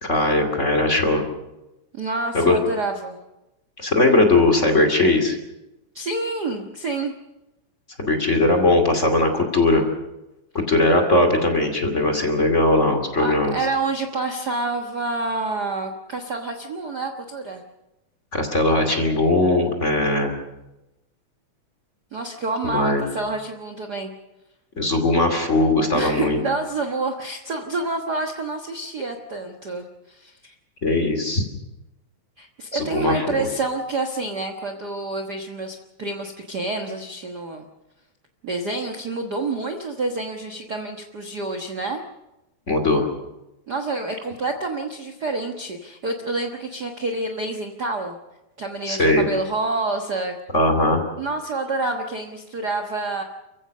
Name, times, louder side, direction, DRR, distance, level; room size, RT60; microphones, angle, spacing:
voice 1, 0.0-1.2 2.3-2.6 3.8-5.4 8.0-9.8 10.7-13.5 18.3-20.4 22.6-23.0 24.8-26.4 30.8-31.5 32.7-33.5 42.7-43.1 48.9-49.3 50.5-51.0, left 2 dB, 25° left, 5 dB, 2.6 m, -19 dB
voice 2, 1.9-3.2 5.9-7.1 13.2-17.6 22.1-24.1 25.9-30.5 32.4-37.7 38.4-42.0 43.7-48.2 48.6-50.3 51.2-53.2, right 3 dB, 45° right, 3 dB, 1.5 m, -28 dB
29.5 x 15.5 x 6.5 m, 0.96 s
omnidirectional pair, 3.4 m